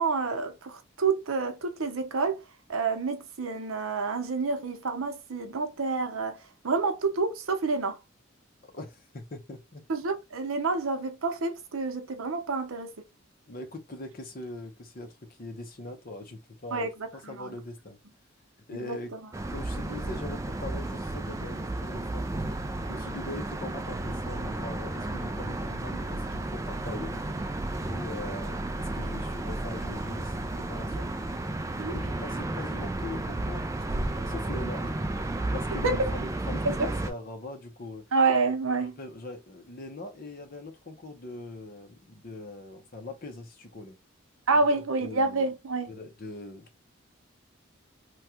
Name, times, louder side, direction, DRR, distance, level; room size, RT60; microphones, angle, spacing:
voice 1, 0.0-2.4 2.7-8.0 9.9-12.9 16.7-16.9 17.2-17.6 18.7-19.2 19.9-20.0 31.8-31.9 35.8-36.0 36.8-36.9 38.1-39.0 44.5-45.9, right 4 dB, 85° right, 0.7 m, -28 dB
voice 2, 8.7-9.8 13.5-18.0 18.7-19.1 19.5-22.5 22.9-27.4 27.9-31.1 31.7-34.9 35.5-38.0 38.8-44.0 45.0-45.5 45.9-46.7, left 2 dB, 45° left, 0.8 m, -41 dB
sound 1, 19.3-37.1, right 2 dB, 15° right, 0.3 m, -33 dB
3.2 x 2.3 x 2.8 m
head